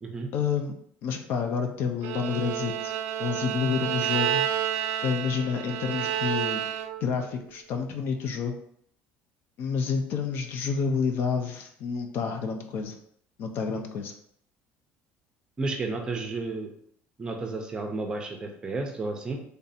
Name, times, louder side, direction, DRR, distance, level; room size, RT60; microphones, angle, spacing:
voice 1, 0.3-2.9 3.2-4.4 5.0-6.6 7.0-8.6 9.6-13.0 13.4-14.1, left 6 dB, 50° left, 5 dB, 0.5 m, -29 dB
Bowed string instrument, 2.0-7.2, right 10 dB, 80° right, 0.4 m, -30 dB
voice 2, 15.6-16.7 17.2-19.4, right 3 dB, 20° right, 3 dB, 0.6 m, -32 dB
3.4 x 2.6 x 4.0 m, 0.67 s
cardioid pair, 160°, 5 cm